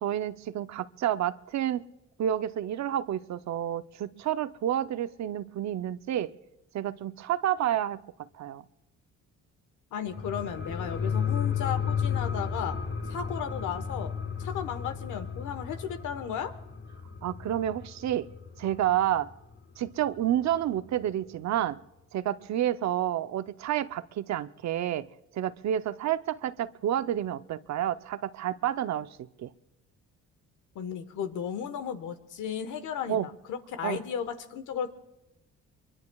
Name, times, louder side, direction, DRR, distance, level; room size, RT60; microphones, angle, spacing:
voice 1, 0.0-1.9 2.2-6.3 6.7-8.6 17.2-18.3 18.6-19.3 19.8-21.8 22.1-25.1 25.3-29.5 33.1-33.3 33.8-34.0, right 11 dB, 65° right, 0.7 m, -29 dB
voice 2, 9.9-12.8 13.1-14.1 14.4-16.5 30.7-34.9, left 8 dB, 85° left, 1.3 m, -35 dB
sound 1, 10.1-19.2 19.5-19.6, left 6 dB, 45° left, 1.8 m, -33 dB
24.0 x 23.5 x 2.3 m
cardioid pair, 90°, 30 cm